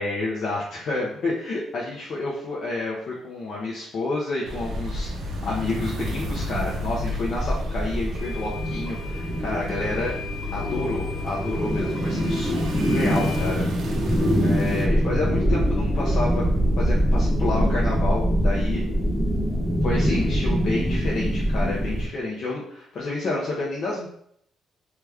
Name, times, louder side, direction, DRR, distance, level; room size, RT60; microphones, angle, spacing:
voice 1, 0.0-10.1 10.5-12.6 12.9-13.7 13.9-14.0 14.4-16.4 16.8-18.8 19.8-24.1, left 2 dB, 60° left, -5 dB, 0.7 m, -29 dB
sound 1, 4.4-14.9, equal, 75° right, 0.6 m, -33 dB
sound 2, 4.6-22.1, equal, 5° right, 0.8 m, -24 dB
sound 3, 7.1-7.2 8.1-13.5, left 3 dB, 35° right, 0.8 m, -39 dB
2.9 x 2.3 x 3.4 m, 0.67 s
cardioid pair, 90°, 0 cm